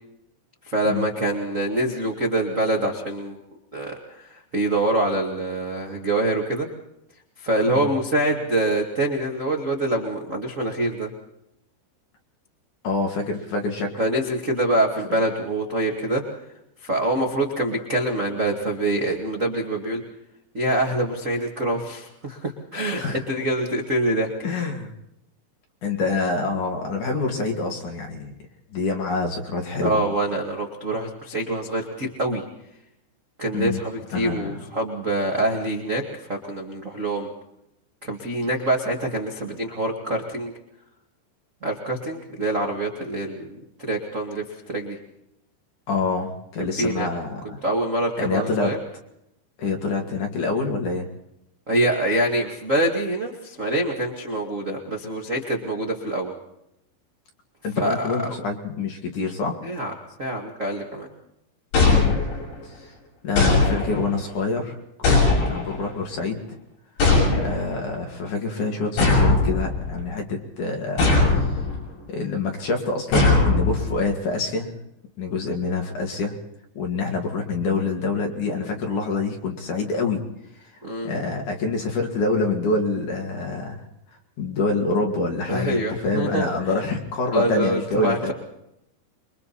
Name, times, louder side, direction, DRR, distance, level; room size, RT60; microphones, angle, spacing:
voice 1, 0.7-3.4 3.7-6.7 7.4-11.1 14.0-16.2 16.8-20.0 20.5-24.3 29.8-32.4 33.4-37.3 38.0-40.5 41.6-45.0 46.8-47.1 47.6-48.8 51.7-56.3 57.8-58.3 59.6-59.9 60.2-61.1 80.8-81.1 85.5-86.5 87.3-88.3, right 1 dB, 40° right, -1 dB, 1.1 m, -25 dB
voice 2, 12.8-13.9 23.0-23.2 24.4-24.9 25.8-28.3 28.7-30.0 33.5-33.8 34.1-34.6 45.9-47.6 48.2-48.7 49.6-51.1 57.6-59.6 61.8-62.2 62.6-62.9 63.2-66.6 67.4-71.0 71.3-71.6 72.1-74.7 75.2-76.3 76.7-80.2 80.6-80.7 81.0-83.8 84.4-88.3, left 3 dB, 50° left, 2 dB, 3.3 m, -26 dB
sound 1, 61.7-62.6 63.4-64.2 65.0-65.9 67.0-67.8 69.0-70.0 71.0-71.8 73.1-74.0, left 3 dB, 70° left, 9.2 m, -19 dB
27.0 x 23.0 x 4.3 m, 0.81 s
omnidirectional pair, 5.3 m